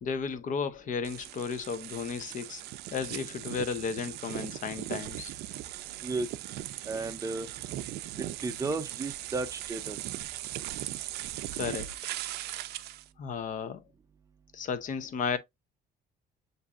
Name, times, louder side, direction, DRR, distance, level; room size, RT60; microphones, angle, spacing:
voice 1, 0.0-2.6 2.9-5.3 11.5-11.9 13.2-13.8 14.5-15.4, left 6 dB, 50° left, 0.7 m, -34 dB
sound 1, 1.0-13.1, right 14 dB, 75° right, 0.4 m, -39 dB
voice 2, 6.9-7.5 8.2-10.0, right 3 dB, 20° right, 0.6 m, -34 dB
7.3 x 2.7 x 2.4 m
cardioid pair, 110°, 17 cm